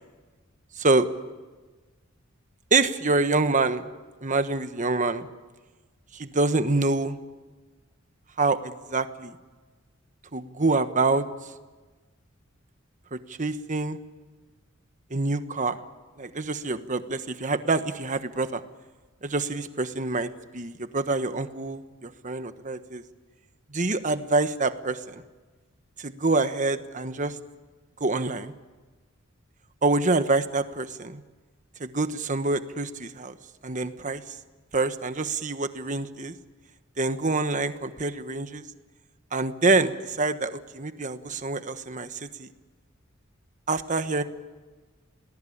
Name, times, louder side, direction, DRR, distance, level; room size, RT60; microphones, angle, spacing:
voice 1, 0.8-1.1 2.7-3.9 4.2-5.3 6.1-7.2 8.4-9.4 10.3-11.2 13.1-14.0 15.1-15.8 16.2-18.6 19.2-20.3 20.5-23.0 23.7-25.2 26.0-27.4 28.0-28.5 29.8-31.2 31.8-33.3 33.6-34.2 34.7-36.3 37.0-38.6 39.3-42.5 43.7-44.2, right 3 dB, 40° right, 10 dB, 1.2 m, -26 dB
28.0 x 19.5 x 8.7 m, 1.3 s
head